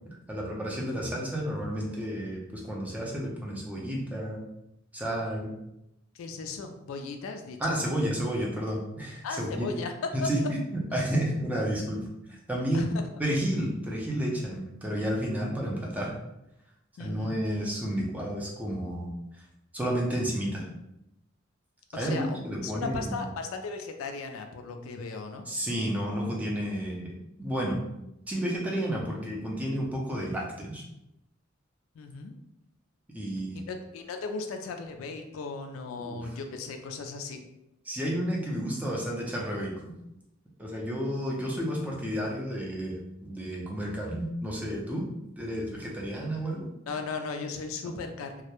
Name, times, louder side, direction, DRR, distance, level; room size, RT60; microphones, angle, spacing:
voice 1, 0.3-4.4 4.9-5.5 7.6-9.7 10.1-12.9 13.2-16.2 17.0-19.1 19.7-20.7 21.9-23.3 25.5-27.1 27.4-27.8 28.3-30.8 33.1-33.6 36.0-36.3 37.9-39.9 40.6-45.0 45.4-46.7, equal, 10° right, -3 dB, 0.4 m, -31 dB
voice 2, 6.1-7.8 9.2-9.9 10.2-10.3 12.7-12.9 17.0-17.4 21.9-25.5 31.9-32.3 33.6-37.4 46.9-48.4, left 4 dB, 85° left, 6 dB, 0.3 m, -36 dB
2.2 x 2.0 x 2.9 m, 0.87 s
head